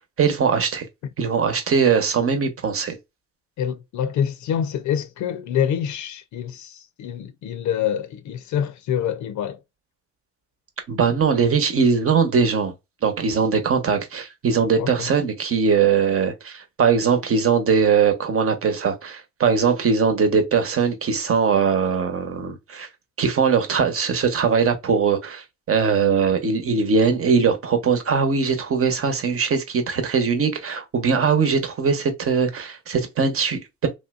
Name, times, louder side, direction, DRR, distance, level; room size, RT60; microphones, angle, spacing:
voice 1, 0.2-0.9 1.2-3.0 10.9-12.7 13.0-22.9 23.2-33.9, right 6 dB, 50° right, 1.0 m, -21 dB
voice 2, 3.6-9.6 14.8-15.1, left 9 dB, 75° left, 0.5 m, -26 dB
3.2 x 2.7 x 2.3 m
cardioid pair, 90°, 30 cm